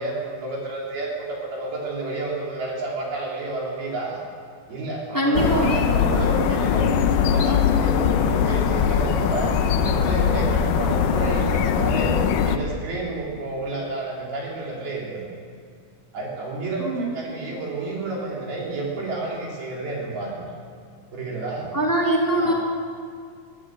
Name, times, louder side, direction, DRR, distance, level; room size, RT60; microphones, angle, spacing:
voice 1, 0.0-4.2 4.7-12.1 12.4-15.3 16.1-20.5 21.1-21.7 22.4-22.5, right 2 dB, 60° right, -3 dB, 5.6 m, -30 dB
voice 2, 5.1-6.0 16.8-17.0 21.7-22.5, right 1 dB, 5° left, -2 dB, 2.1 m, -22 dB
sound 1, 5.3-12.6, left 7 dB, 90° left, 1.8 m, -21 dB
20.5 x 16.0 x 7.9 m, 2.2 s
omnidirectional pair, 5.2 m